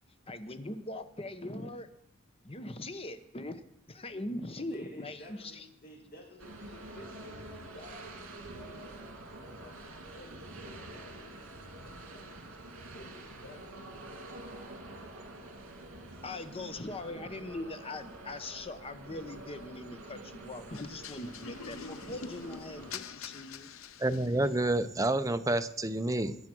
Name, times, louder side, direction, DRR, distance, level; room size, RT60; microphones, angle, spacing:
voice 1, 0.3-1.9 2.4-3.6 3.9-5.7 16.2-23.7, left 2 dB, 25° left, 10 dB, 1.0 m, -41 dB
voice 2, 4.6-11.3 12.0-12.3 12.9-14.3, left 1 dB, 45° left, -1 dB, 5.8 m, -53 dB
sound 1, 6.4-23.0, right 2 dB, 75° right, 2.7 m, -47 dB
sound 2, 20.7-24.7, left 6 dB, 75° left, 0.7 m, -45 dB
voice 3, 24.0-26.4, right 2 dB, 15° right, 9 dB, 0.7 m, -29 dB
21.5 x 8.4 x 6.2 m, 0.76 s
head